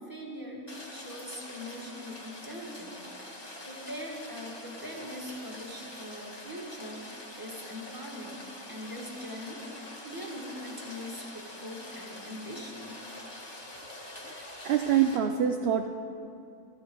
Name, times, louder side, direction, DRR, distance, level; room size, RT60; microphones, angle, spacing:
voice 1, 0.0-3.0 3.6-13.0, equal, 15° right, -1 dB, 1.8 m, -42 dB
Rain, 0.7-15.2, left 1 dB, 20° left, 1.4 m, -45 dB
voice 2, 14.2-15.9, right 9 dB, 65° right, 6 dB, 0.6 m, -26 dB
14.0 x 13.0 x 4.8 m, 2.5 s
omnidirectional pair, 1.5 m